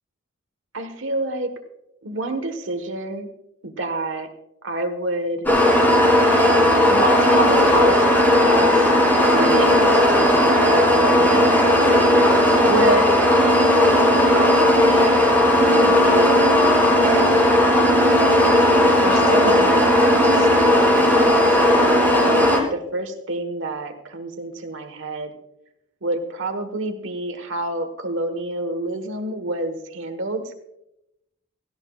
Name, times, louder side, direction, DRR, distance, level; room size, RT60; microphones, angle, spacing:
voice 1, 0.7-1.5 2.0-3.3 3.6-4.3 4.6-5.5 6.7-8.9 9.3-11.5 12.6-13.2 14.1-15.2 15.7-16.4 18.8-25.3 26.0-30.5, right 2 dB, 65° right, 7 dB, 1.4 m, -28 dB
sound 1, 5.5-22.6, left 1 dB, 10° left, 2.8 m, -16 dB
17.5 x 14.5 x 2.4 m, 0.84 s
head